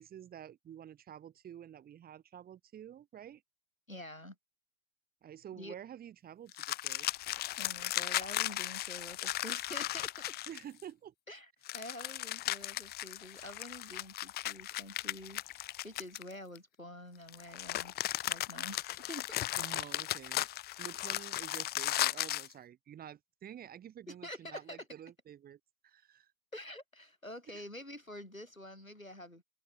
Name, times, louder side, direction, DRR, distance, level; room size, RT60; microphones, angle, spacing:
voice 1, 0.0-3.4 5.2-7.1 10.5-11.1 19.6-20.5 20.8-26.3 27.5-27.6, right 10 dB, 20° right, 7.1 m, -49 dB
voice 2, 3.9-4.3 5.5-5.7 7.6-10.4 11.3-17.9 18.3-19.9 24.1-24.8 26.5-29.4, left 1 dB, 90° left, 6.7 m, -48 dB
sound 1, 6.5-10.8 11.6-16.6 17.3-22.5, left 15 dB, 25° left, 1.4 m, -36 dB
open air
figure-of-eight pair, 100°, 39 cm